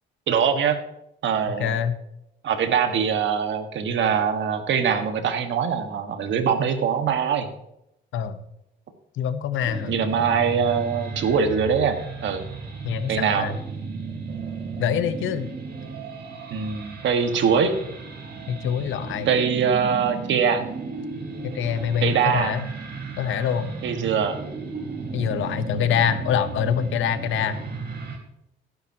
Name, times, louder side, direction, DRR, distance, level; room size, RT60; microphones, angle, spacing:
voice 1, 0.3-0.8 1.2-1.8 2.4-7.5 9.9-12.4 13.1-13.5 16.5-17.8 19.3-20.6 22.0-22.6 23.8-24.4, right 6 dB, 70° right, 6 dB, 1.8 m, -23 dB
voice 2, 1.5-2.0 8.1-8.4 9.2-9.9 12.8-13.6 14.8-15.5 18.5-19.3 21.4-22.7 23.2-23.7 25.1-27.6, left 8 dB, 80° left, 11 dB, 1.1 m, -25 dB
sound 1, 9.6-28.2, right 4 dB, 55° right, 3.5 m, -35 dB
17.0 x 10.5 x 3.0 m, 0.81 s
cardioid pair, 90°, 20 cm